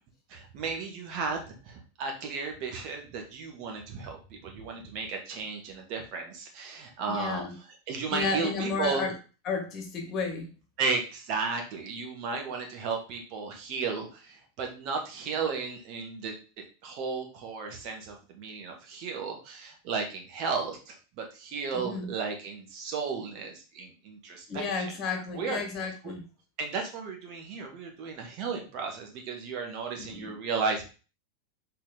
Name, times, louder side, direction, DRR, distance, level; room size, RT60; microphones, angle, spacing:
voice 1, 0.3-4.2 4.4-7.5 7.9-9.1 10.8-16.3 16.8-24.9 25.3-25.6 26.0-26.1 26.6-30.8, right 5 dB, 40° right, 3 dB, 1.8 m, -34 dB
voice 2, 7.1-7.5 8.1-9.1 9.5-10.5 21.7-22.1 24.5-26.2 30.0-30.3, left 4 dB, 35° left, 3 dB, 2.1 m, -32 dB
6.4 x 4.7 x 4.0 m, 0.34 s
figure-of-eight pair, 90°, 0 cm